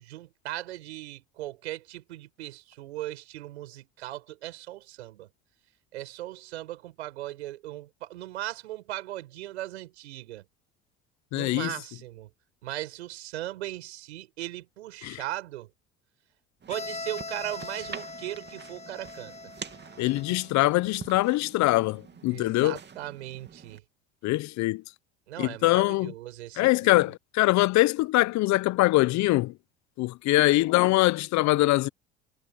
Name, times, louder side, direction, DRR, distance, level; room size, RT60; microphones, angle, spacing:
voice 1, 0.0-5.3 5.9-10.4 11.3-12.3 12.6-15.7 16.7-19.3 22.3-23.8 25.3-27.1, right 15 dB, 85° right, 7.7 m, -38 dB
voice 2, 11.3-11.7 15.0-15.2 20.0-22.8 24.2-24.8 25.4-26.1 26.6-29.5 30.0-31.9, left 19 dB, 60° left, 1.1 m, -23 dB
sound 1, 16.6-23.8, right 6 dB, 35° right, 2.6 m, -46 dB
Bowed string instrument, 16.7-20.4, left 3 dB, 20° left, 6.9 m, -41 dB
hypercardioid pair, 70°, 32 cm